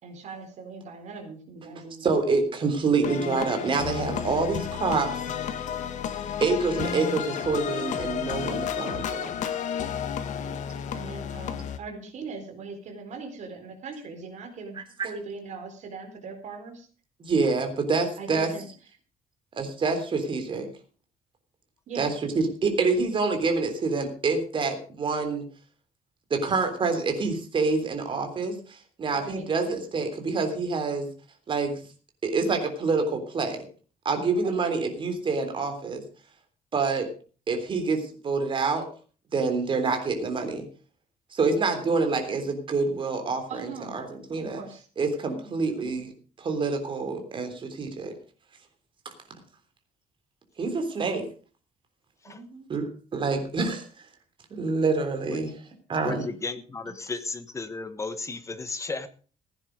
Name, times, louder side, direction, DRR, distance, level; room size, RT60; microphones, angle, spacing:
voice 1, 0.0-2.1 10.4-10.6 10.9-14.8 15.0-16.9 18.2-18.7 21.9-22.1 29.1-29.5 34.3-34.6 41.6-42.0 43.5-44.0 44.6-44.9 45.3-45.6 52.2-52.7, right 4 dB, 60° right, 5 dB, 4.3 m, -40 dB
voice 2, 2.0-5.1 6.4-9.3 15.0-15.1 17.2-18.5 19.6-20.7 22.0-25.4 26.3-31.1 31.5-31.8 32.2-33.7 34.1-36.0 36.7-37.1 37.5-38.9 39.3-40.6 41.3-44.6 45.0-46.1 46.4-48.1 50.6-51.3 52.7-53.9 54.5-55.5 55.9-56.3, right 4 dB, 35° right, 6 dB, 3.4 m, -27 dB
sound 1, 3.0-11.8, left 8 dB, 60° left, 1.6 m, -32 dB
voice 3, 56.0-59.1, left 3 dB, 20° left, 12 dB, 1.3 m, -34 dB
16.0 x 9.9 x 5.1 m, 0.39 s
cardioid pair, 145°, 14 cm